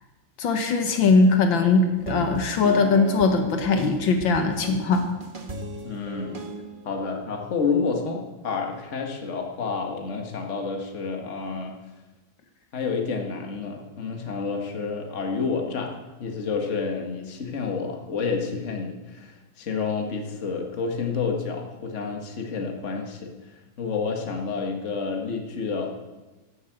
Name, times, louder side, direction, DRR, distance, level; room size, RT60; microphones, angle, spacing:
voice 1, 0.4-5.1, left 4 dB, 80° left, 6 dB, 1.9 m, -20 dB
sound 1, 2.0-6.9, right 3 dB, 30° right, 1.2 m, -36 dB
voice 2, 5.8-6.4 6.9-11.7 12.7-16.0 16.2-25.9, left 5 dB, 40° left, 3 dB, 1.7 m, -29 dB
12.5 x 8.3 x 7.9 m, 1.2 s
omnidirectional pair, 2.1 m